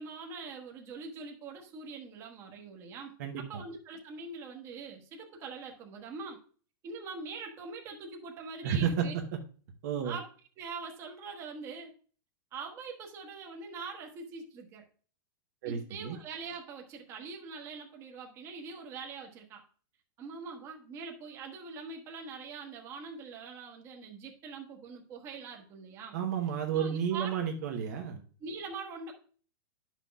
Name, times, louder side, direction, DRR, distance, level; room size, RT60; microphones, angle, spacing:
voice 1, 0.0-6.4 6.8-9.2 10.0-10.3 10.6-11.9 12.5-14.8 15.6-19.6 20.2-26.2 26.7-27.5 28.4-29.1, right 4 dB, 20° right, 2 dB, 1.2 m, -43 dB
voice 2, 3.2-3.6 8.6-9.4 9.8-10.2 15.6-16.2 26.1-28.2, right 8 dB, 50° right, 3 dB, 1.0 m, -32 dB
10.5 x 6.0 x 2.3 m, 0.42 s
supercardioid pair, 170°, 12 cm